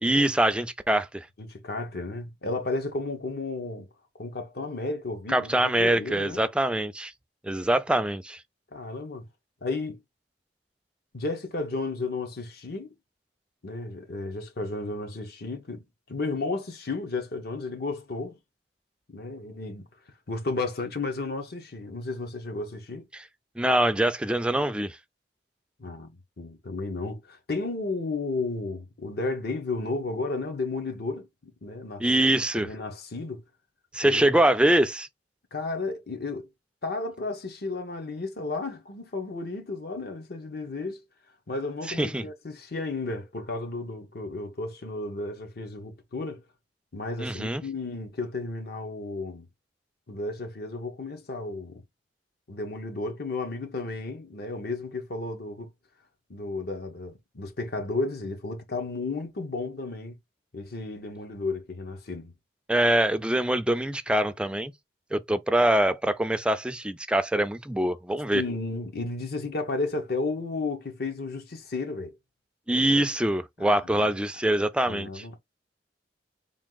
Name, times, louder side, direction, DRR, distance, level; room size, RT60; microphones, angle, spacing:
voice 1, 0.0-1.3 5.3-7.1 7.4-8.4 23.6-25.0 32.0-32.7 33.9-35.1 41.9-42.2 47.2-47.6 62.7-64.7 65.1-68.4 72.7-75.2, right 1 dB, 5° right, 0.3 m, -24 dB
voice 2, 1.4-3.9 4.2-6.4 8.7-9.3 9.6-10.0 11.1-12.9 13.6-18.4 19.1-19.9 20.3-23.1 25.8-31.3 31.6-32.1 32.5-33.4 34.0-34.2 35.5-36.5 36.8-41.0 41.5-46.4 46.9-49.5 50.1-51.8 52.5-55.7 56.3-60.2 60.5-62.3 68.3-72.2 73.6-74.1 74.8-75.4, left 3 dB, 60° left, 0.9 m, -33 dB
3.6 x 2.5 x 3.8 m
head